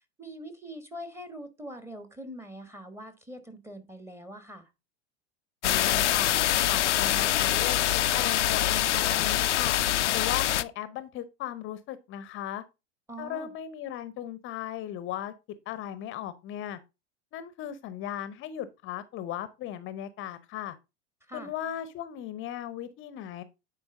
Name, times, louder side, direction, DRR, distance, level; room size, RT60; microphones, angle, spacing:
voice 1, 0.2-4.7 13.1-13.5 21.3-21.5, equal, 5° right, 1.4 m, -43 dB
sound 1, 5.6-10.6, left 12 dB, 75° left, 0.5 m, -25 dB
voice 2, 5.6-6.4 6.6-9.8 10.1-12.6 13.2-15.3 15.7-16.8 17.3-20.8 21.3-23.4, left 11 dB, 35° left, 0.8 m, -37 dB
9.8 x 4.5 x 3.6 m
figure-of-eight pair, 90°, 35 cm